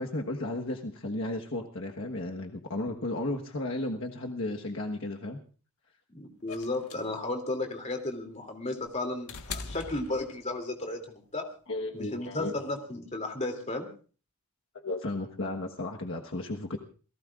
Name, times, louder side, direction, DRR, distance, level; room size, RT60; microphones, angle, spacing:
voice 1, 0.0-5.4 11.7-12.5 14.7-16.8, left 2 dB, 60° left, 1 dB, 1.4 m, -34 dB
voice 2, 6.1-11.4 11.9-13.9, left 2 dB, 30° left, 4 dB, 2.8 m, -34 dB
sound 1, 6.5-10.8 12.0-12.1, left 4 dB, 85° left, 1.6 m, -42 dB
28.0 x 18.0 x 2.5 m, 0.39 s
head